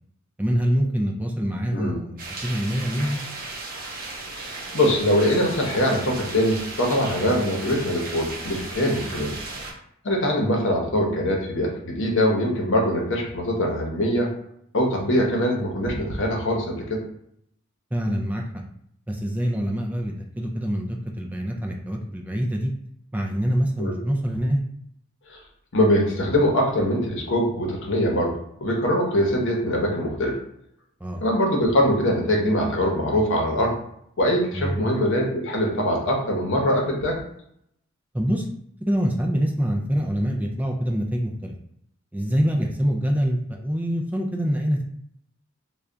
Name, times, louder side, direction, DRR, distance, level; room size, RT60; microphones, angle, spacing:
voice 1, 0.4-3.2 17.9-18.4 19.1-22.7 23.1-24.6 31.0-31.2 34.5-34.8 38.1-38.5 38.8-41.5 42.1-44.8, equal, 10° right, 1 dB, 0.3 m, -25 dB
sound 1, 2.2-9.7, right 2 dB, 45° right, 0.7 m, -35 dB
voice 2, 4.3-9.3 10.0-14.3 14.7-17.0 23.8-23.9 25.3-25.4 25.7-30.4 31.2-33.8 34.2-37.2, equal, 65° left, 0 dB, 0.8 m, -23 dB
3.3 x 2.3 x 3.7 m, 0.72 s
head